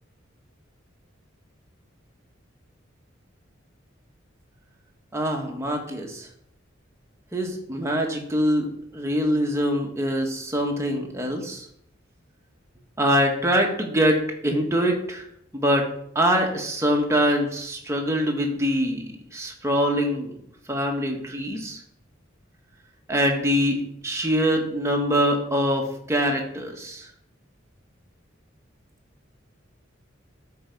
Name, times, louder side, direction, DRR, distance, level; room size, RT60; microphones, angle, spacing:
voice 1, 5.1-6.3 7.3-11.6 13.0-15.2 15.5-15.9 16.1-20.3 20.7-21.8 23.1-23.8 24.0-27.1, equal, 15° right, 1 dB, 1.6 m, -24 dB
12.5 x 4.8 x 5.4 m, 0.70 s
head